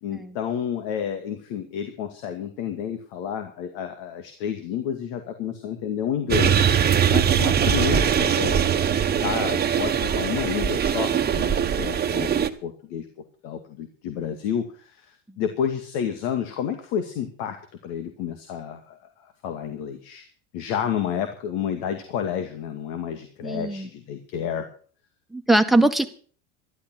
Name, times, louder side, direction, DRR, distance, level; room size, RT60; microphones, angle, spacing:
voice 1, 0.0-8.6 9.0-13.1 13.4-17.6 17.8-20.3 20.5-24.7, left 8 dB, 65° left, 7 dB, 2.3 m, -30 dB
sound 1, 6.3-12.5, right 8 dB, 25° right, 1.4 m, -21 dB
voice 2, 23.4-23.9 25.3-26.1, right 2 dB, ahead, 10 dB, 1.7 m, -21 dB
13.0 x 12.0 x 6.2 m, 0.43 s
hypercardioid pair, 100°, 36 cm